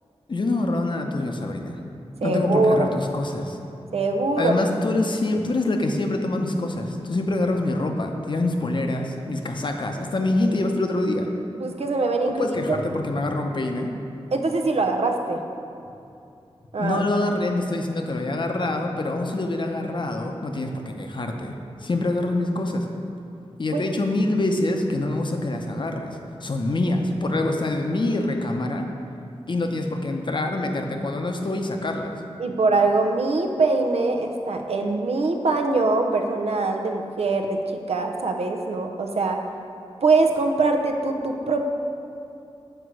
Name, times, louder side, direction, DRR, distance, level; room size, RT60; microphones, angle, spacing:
voice 1, 0.3-1.8 2.2-3.6 4.4-11.3 12.3-14.0 16.8-22.9 23.6-28.9 29.5-32.1, left 2 dB, 50° left, 3 dB, 0.7 m, -25 dB
voice 2, 2.2-2.9 3.9-4.6 11.6-12.8 14.3-15.4 16.7-17.0 23.7-23.8 32.4-37.6 37.9-39.4 40.0-41.6, right 3 dB, 80° right, 3 dB, 0.7 m, -23 dB
7.9 x 4.5 x 6.2 m, 2.6 s
wide cardioid pair, 90°, 10 cm